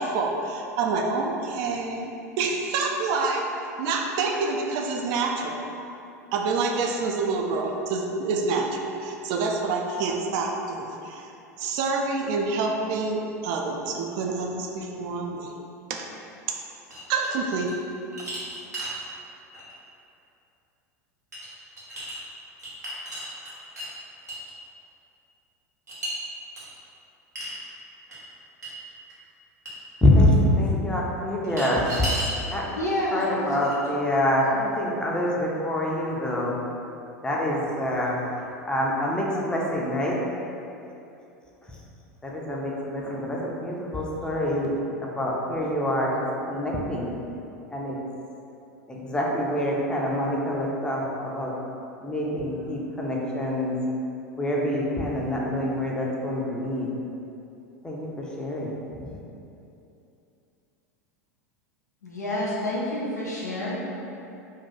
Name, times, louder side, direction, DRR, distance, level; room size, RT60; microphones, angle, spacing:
voice 1, 0.0-3.5 3.8-5.6 6.3-11.3 11.6-15.5 15.9-16.1 16.5-16.6 17.1-17.7, right 4 dB, 50° right, 2 dB, 0.4 m, -27 dB
sound 1, 16.9-17.8 18.1-19.0 19.5-19.7 21.3-21.5 21.8-22.2 22.6-23.9 24.3-24.5 25.9-26.1 26.6-26.7 27.3-27.6 28.1-28.2 28.6-28.7 29.1-29.2 29.6-29.7 31.4-32.3 33.2-33.3 33.6-34.1, right 1 dB, 85° right, 0.8 m, -34 dB
voice 2, 30.0-32.1 32.5-32.6 33.1-36.6 37.2-40.2 41.7-41.8 42.2-44.8 45.0-47.2 47.7-48.0 48.9-51.6 52.0-53.8 54.4-56.9 57.8-59.2, left 1 dB, 10° left, -3 dB, 0.5 m, -26 dB
voice 3, 32.8-33.6 34.4-34.7 62.0-63.8, left 1 dB, 85° left, -6 dB, 0.5 m, -29 dB
2.6 x 2.4 x 3.8 m, 2.8 s
figure-of-eight pair, 85°, 9 cm